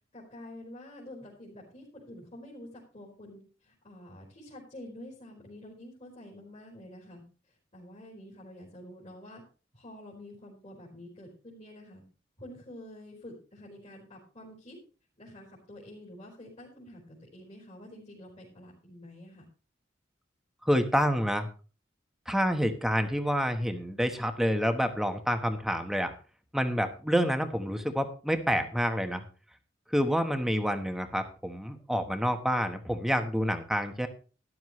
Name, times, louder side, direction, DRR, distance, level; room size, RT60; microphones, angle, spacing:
voice 1, 0.1-7.2 7.7-9.4 9.7-12.0 12.4-14.8 15.2-19.5, left 1 dB, 35° left, -4 dB, 4.1 m, -48 dB
voice 2, 20.6-21.5 22.3-26.1 26.5-29.2 29.9-34.1, equal, ahead, 6 dB, 1.2 m, -28 dB
12.5 x 11.5 x 3.2 m, 0.36 s
head